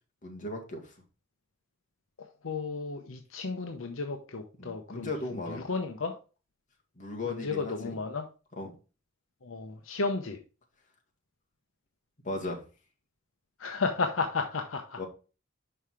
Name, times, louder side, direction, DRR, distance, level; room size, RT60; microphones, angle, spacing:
voice 1, 0.2-0.9 4.6-5.6 7.0-8.0 8.6-8.7 12.2-12.6 15.0-15.1, left 2 dB, 40° left, 0 dB, 2.0 m, -37 dB
voice 2, 2.4-5.1 5.5-6.2 7.3-8.2 9.4-10.4 13.6-15.0, left 4 dB, 70° left, 5 dB, 0.8 m, -33 dB
5.6 x 5.5 x 4.8 m, 0.33 s
head